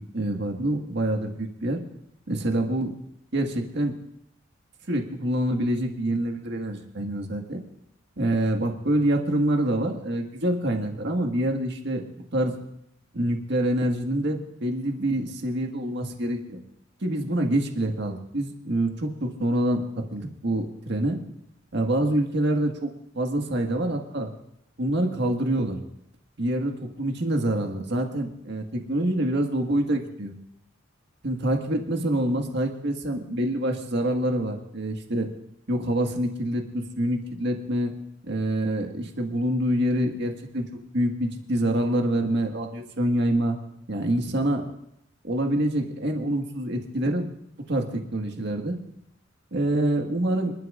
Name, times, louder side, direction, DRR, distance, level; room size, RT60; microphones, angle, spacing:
voice 1, 0.0-1.8 2.3-3.0 3.3-3.9 4.9-7.6 8.2-12.0 12.3-12.5 13.1-16.6 17.0-19.8 20.1-21.2 21.7-22.9 23.1-24.3 24.8-25.8 26.4-30.3 31.2-35.3 35.7-37.9 38.3-40.6 40.9-43.6 43.9-44.7 45.2-47.3 47.7-48.8 49.5-50.5, right 1 dB, 60° right, 3 dB, 1.7 m, -26 dB
28.0 x 12.0 x 2.5 m, 0.75 s
head